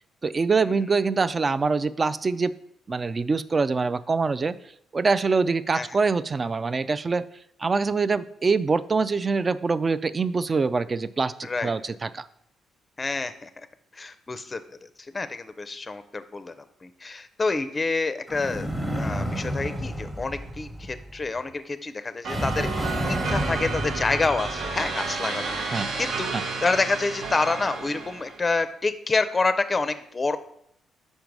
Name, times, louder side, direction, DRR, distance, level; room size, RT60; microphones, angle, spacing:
voice 1, 0.2-2.6 2.9-4.6 4.9-7.3 7.6-11.3 11.6-12.3 25.7-25.9 26.3-26.4, right 4 dB, 30° right, 15 dB, 0.3 m, -24 dB
voice 2, 11.4-11.7 13.0-13.5 13.9-18.7 18.9-26.3 26.6-30.4, left 3 dB, 25° left, 11 dB, 0.5 m, -28 dB
sound 1, 18.3-21.3 22.3-25.0, equal, 10° right, 1.0 m, -31 dB
sound 2, 22.2-28.5, right 4 dB, 65° right, 0.8 m, -31 dB
5.2 x 4.6 x 5.2 m, 0.73 s
cardioid pair, 90°, 0 cm